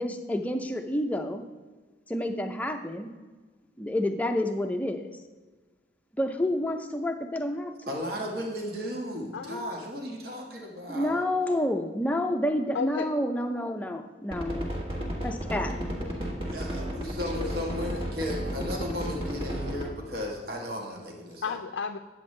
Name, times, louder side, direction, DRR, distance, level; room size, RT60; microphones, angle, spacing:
voice 1, 0.0-1.4 2.1-3.1 3.8-5.1 6.1-7.7 10.9-14.7 15.2-15.7, left 1 dB, 10° left, 4 dB, 0.5 m, -29 dB
voice 2, 7.9-11.2 16.5-21.5, left 1 dB, 55° right, 0 dB, 1.3 m, -35 dB
voice 3, 9.3-9.7 12.7-13.1 15.9-16.4 17.1-17.9 21.4-22.0, left 6 dB, 75° left, 6 dB, 0.4 m, -35 dB
sound 1, 14.3-19.9, equal, 30° right, 1.4 m, -32 dB
9.6 x 7.8 x 3.2 m, 1.3 s
head